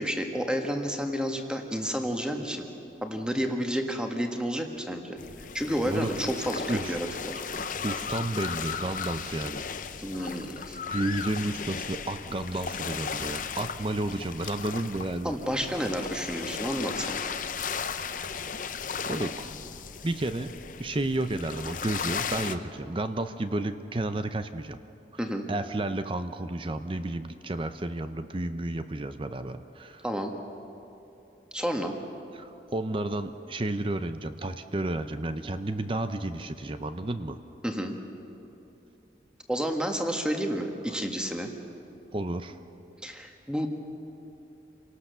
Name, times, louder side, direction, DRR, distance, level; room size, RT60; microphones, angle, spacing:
voice 1, 0.0-2.6 3.0-5.2 5.5-7.4 10.0-10.8 15.2-17.2 25.2-25.5 30.0-30.3 31.5-31.9 37.6-37.9 39.5-41.5 43.0-43.7, equal, 5° right, 3 dB, 1.5 m, -30 dB
sound 1, 5.2-22.5, left 6 dB, 45° left, 0.7 m, -36 dB
voice 2, 7.8-9.7 10.9-15.3 18.3-18.4 19.1-19.5 20.0-20.5 20.8-24.8 25.5-30.0 32.3-37.4 40.9-41.0 42.1-42.6, right 2 dB, 30° right, 9 dB, 0.6 m, -31 dB
28.5 x 18.0 x 6.8 m, 2.9 s
head